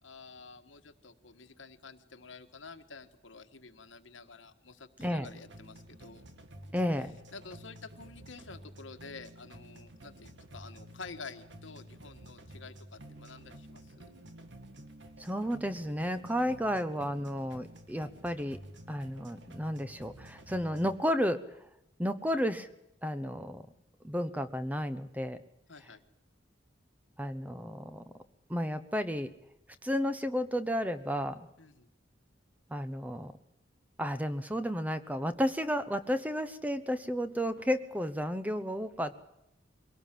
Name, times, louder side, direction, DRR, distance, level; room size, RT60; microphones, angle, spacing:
voice 1, 0.0-6.2 7.3-14.1 25.7-26.0 31.6-31.9, left 4 dB, 90° left, 7 dB, 1.7 m, -49 dB
sound 1, 5.0-21.0, right 1 dB, 70° right, 2.2 m, -51 dB
voice 2, 6.7-7.1 15.2-18.6 18.9-21.4 22.0-22.7 23.0-23.6 24.0-25.4 27.2-28.0 28.5-29.3 29.8-31.5 32.7-33.3 34.0-39.2, equal, 10° right, 11 dB, 1.0 m, -32 dB
23.0 x 18.0 x 7.6 m, 0.83 s
head